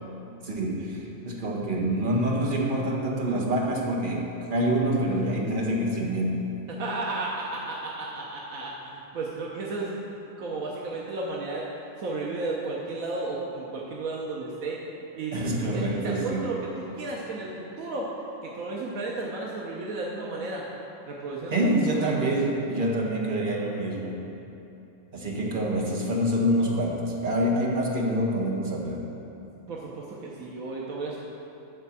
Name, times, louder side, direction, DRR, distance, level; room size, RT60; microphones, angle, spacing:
voice 1, 0.4-6.5 15.3-16.4 21.5-24.3 25.1-29.1, right 1 dB, 40° right, -2 dB, 1.4 m, -26 dB
voice 2, 6.7-10.0 10.4-11.7 12.0-14.8 15.2-15.4 15.7-18.1 18.4-20.7 21.1-21.6 21.9-22.1 29.7-31.2, right 3 dB, 80° right, -3 dB, 1.4 m, -33 dB
12.0 x 4.5 x 7.4 m, 2.9 s
omnidirectional pair, 1.4 m